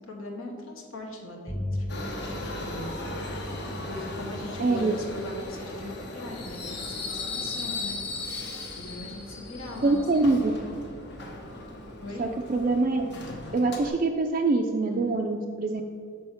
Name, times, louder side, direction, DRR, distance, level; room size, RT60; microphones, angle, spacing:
voice 1, 0.1-1.9 2.4-3.0 3.9-8.0 8.8-10.4 12.0-12.3 14.9-15.2, left 2 dB, 75° left, 0 dB, 1.1 m, -40 dB
Bowed string instrument, 1.5-7.1, left 1 dB, 15° left, 1.0 m, -39 dB
Subway metro underground, 1.9-13.9, left 2 dB, 50° left, 0.9 m, -37 dB
voice 2, 4.6-4.9 9.8-10.5 12.2-13.2 13.5-15.8, right 3 dB, 40° right, 2 dB, 0.3 m, -24 dB
6.3 x 4.4 x 5.9 m, 2.1 s
head